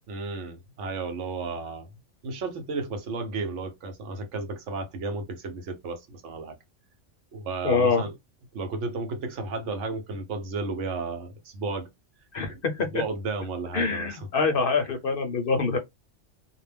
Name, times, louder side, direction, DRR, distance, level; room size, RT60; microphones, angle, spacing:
voice 1, 0.1-1.9 2.2-6.6 7.3-8.1 8.5-11.9 12.5-12.6 12.9-14.3, right 3 dB, 75° right, 1.0 m, -33 dB
voice 2, 7.6-8.0 12.3-12.9 13.7-15.8, left 4 dB, 55° left, 0.7 m, -25 dB
2.3 x 2.1 x 3.3 m
omnidirectional pair, 1.3 m